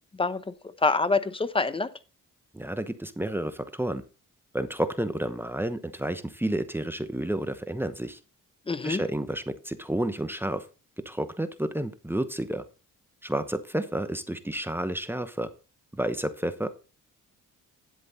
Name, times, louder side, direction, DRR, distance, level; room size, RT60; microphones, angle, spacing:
voice 1, 0.2-1.9 8.7-9.0, left 3 dB, 15° left, 0.8 m, -26 dB
voice 2, 2.5-4.0 4.5-8.2 8.8-10.6 11.0-12.7 13.2-15.5 15.9-16.8, right 1 dB, 5° right, 0.9 m, -30 dB
10.5 x 7.8 x 4.1 m
cardioid pair, 95°, 33 cm